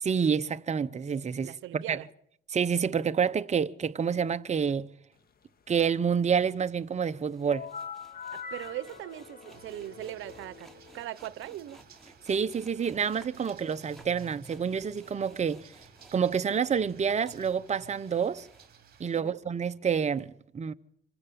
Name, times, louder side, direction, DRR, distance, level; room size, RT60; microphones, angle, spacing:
voice 1, 0.0-2.0 2.5-4.9 5.7-7.7 12.3-15.7 16.1-18.5 19.0-20.7, right 6 dB, 35° right, 0.9 m, -28 dB
voice 2, 1.4-2.1 8.3-11.8 19.1-19.4, right 14 dB, 80° right, 0.9 m, -40 dB
sound 1, 7.3-16.7 17.0-18.7, right 1 dB, ahead, 5.5 m, -57 dB
sound 2, 7.5-11.1, left 6 dB, 50° left, 2.0 m, -43 dB
sound 3, 9.5-19.2, right 6 dB, 50° right, 2.9 m, -55 dB
26.5 x 16.0 x 7.0 m
cardioid pair, 90°, 20 cm